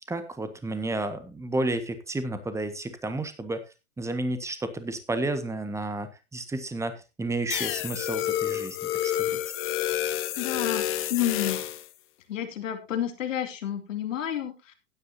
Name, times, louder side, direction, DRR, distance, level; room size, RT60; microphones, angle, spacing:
voice 1, 0.1-3.6 4.0-8.8 9.0-9.4, right 2 dB, 5° right, 10 dB, 1.6 m, -31 dB
sound 1, 7.5-11.9, left 12 dB, 35° left, 1.5 m, -29 dB
voice 2, 10.4-11.6 12.3-14.7, left 10 dB, 75° left, 6 dB, 2.6 m, -30 dB
16.0 x 9.8 x 2.8 m, 0.26 s
hypercardioid pair, 110°, 39 cm